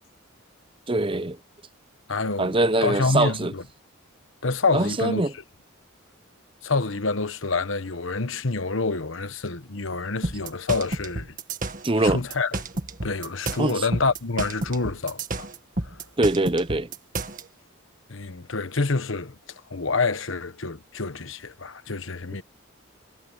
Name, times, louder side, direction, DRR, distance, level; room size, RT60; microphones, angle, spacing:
voice 1, 0.9-1.4 2.4-3.5 4.7-5.3 11.8-12.2 13.6-13.8 16.2-16.9, right 2 dB, 25° right, 0.8 m, -23 dB
voice 2, 2.1-3.6 4.4-5.2 6.6-11.4 12.0-12.5 13.0-15.5 15.8-16.0 18.1-19.4 19.7-22.4, left 3 dB, 70° left, 1.2 m, -27 dB
sound 1, 10.2-17.4, right 2 dB, 40° right, 1.9 m, -31 dB
head